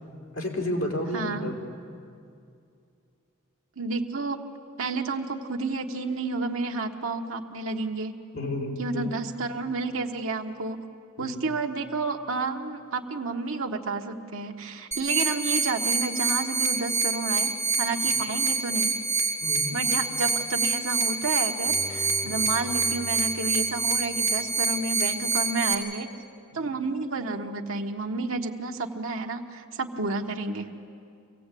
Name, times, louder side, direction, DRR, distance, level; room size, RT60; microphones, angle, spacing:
voice 1, 0.3-1.5 8.3-9.1 11.2-11.4 19.4-19.7 22.2-22.4 26.6-26.7, left 1 dB, 70° left, -1 dB, 4.1 m, -31 dB
voice 2, 1.1-1.5 3.8-4.4 4.8-8.1 8.8-10.8 11.2-18.9 19.7-26.1 26.5-30.7, right 3 dB, 80° right, 2 dB, 1.4 m, -30 dB
sound 1, 14.9-25.7, right 4 dB, 15° right, 3.0 m, -26 dB
Bowed string instrument, 21.6-24.7 25.2-25.3, equal, 15° left, 2.7 m, -44 dB
25.0 x 17.0 x 8.4 m, 2.4 s
head